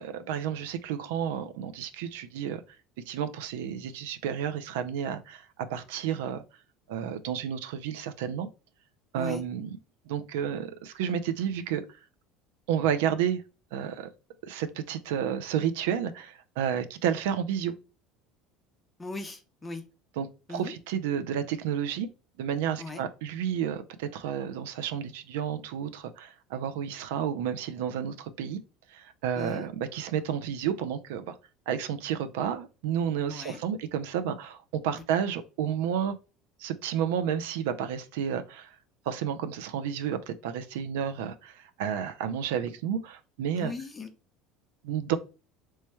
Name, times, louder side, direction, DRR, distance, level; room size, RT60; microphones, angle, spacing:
voice 1, 0.0-2.6 3.1-6.4 6.9-8.5 9.1-9.8 10.1-11.8 12.7-13.4 13.7-14.1 14.5-17.7 20.2-22.1 22.4-28.6 28.9-31.3 31.7-36.1 36.6-38.8 39.1-43.7 44.8-45.2, right 8 dB, 90° right, 0.4 m, -31 dB
voice 2, 19.0-19.8 20.5-20.7 22.8-23.0 29.3-29.7 33.3-33.6 43.6-44.1, left 3 dB, 15° left, 0.6 m, -38 dB
3.1 x 2.2 x 4.2 m
supercardioid pair, 125°, 0 cm